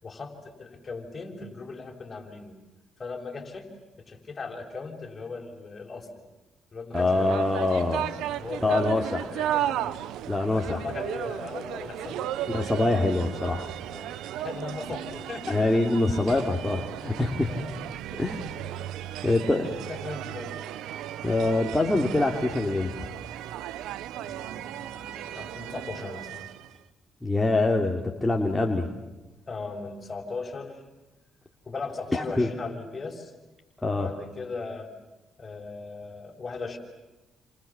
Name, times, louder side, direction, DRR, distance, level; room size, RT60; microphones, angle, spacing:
voice 1, 0.0-2.5 3.0-3.7 4.0-6.2 6.7-7.4 8.4-10.0 10.5-12.6 13.9-16.3 17.5-17.7 18.5-18.7 19.2-20.7 24.2-26.5 29.5-30.8 31.6-33.3 33.9-34.9 35.4-36.8, left 4 dB, 35° left, 2 dB, 6.6 m, -38 dB
voice 2, 6.9-8.1 8.6-9.2 10.3-10.8 12.5-13.7 15.5-17.5 18.2-18.4 19.2-19.7 21.2-23.1 27.2-28.9 32.1-32.5 33.8-34.1, left 2 dB, 10° left, 0 dB, 3.1 m, -24 dB
sound 1, 6.9-26.8, right 12 dB, 90° right, 0.9 m, -35 dB
29.5 x 27.0 x 7.3 m, 1.1 s
cardioid pair, 90°, 0 cm